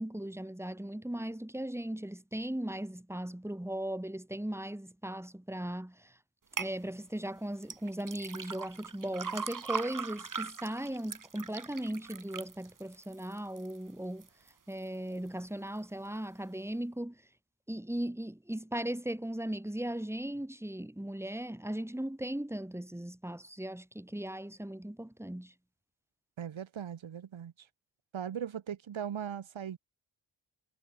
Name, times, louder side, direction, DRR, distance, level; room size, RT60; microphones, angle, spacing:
voice 1, 0.0-6.1 6.6-14.3 14.7-17.2 17.7-25.5, right 1 dB, 5° right, 3.0 m, -38 dB
sound 1, 6.6-6.7 7.6-13.8 14.2-14.7 15.2-15.3, right 6 dB, 45° right, 1.4 m, -40 dB
voice 2, 26.4-27.5 28.1-29.8, right 8 dB, 85° right, 1.5 m, -39 dB
wide cardioid pair, 110°, 46 cm